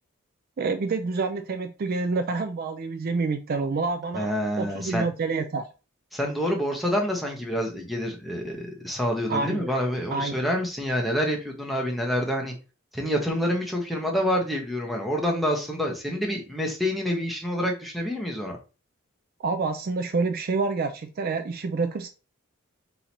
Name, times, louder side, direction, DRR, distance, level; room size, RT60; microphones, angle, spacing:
voice 1, 0.6-4.3 4.6-5.7 9.3-9.7 10.1-10.5 19.4-22.1, right 4 dB, 45° right, 0.4 m, -28 dB
voice 2, 4.1-5.1 6.1-12.5 12.9-18.6, equal, ahead, 1.0 m, -27 dB
3.8 x 3.0 x 4.1 m
head